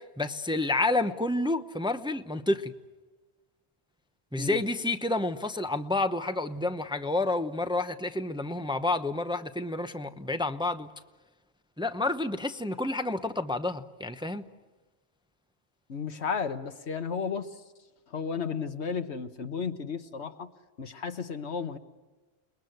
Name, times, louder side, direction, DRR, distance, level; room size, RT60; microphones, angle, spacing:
voice 1, 0.0-2.7 4.3-10.9 11.8-14.5, left 2 dB, 5° right, 0.8 m, -29 dB
voice 2, 15.9-17.5 18.1-20.5 20.8-21.8, left 6 dB, 80° left, 1.5 m, -33 dB
30.0 x 21.0 x 8.0 m
omnidirectional pair, 1.1 m